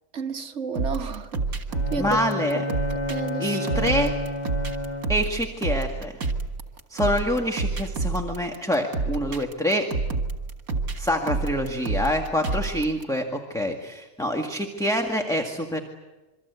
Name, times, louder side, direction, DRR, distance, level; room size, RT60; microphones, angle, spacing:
voice 1, 0.1-1.4 1.9-2.2 2.7-2.8 3.1-3.8, right 5 dB, 50° right, 1.8 m, -31 dB
sound 1, 0.8-13.0, right 3 dB, 70° right, 2.5 m, -29 dB
Bowed string instrument, 1.7-5.4, left 1 dB, 30° left, 1.5 m, -30 dB
voice 2, 2.0-2.6 3.4-4.1 5.1-6.1 6.9-9.8 11.0-15.8, equal, ahead, 1.8 m, -26 dB
27.5 x 24.0 x 8.2 m
omnidirectional pair, 1.6 m